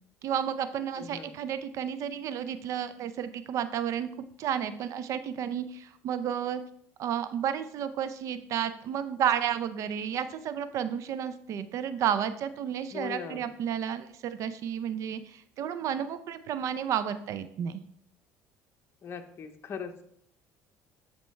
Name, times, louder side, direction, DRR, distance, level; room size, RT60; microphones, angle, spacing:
voice 1, 0.2-4.1 4.4-6.6 7.0-17.8, right 9 dB, 60° right, 12 dB, 0.5 m, -32 dB
voice 2, 0.9-1.3 12.9-13.4 19.0-20.0, left 7 dB, 40° left, 5 dB, 0.8 m, -39 dB
10.0 x 4.4 x 3.2 m, 0.67 s
cardioid pair, 105°, 6 cm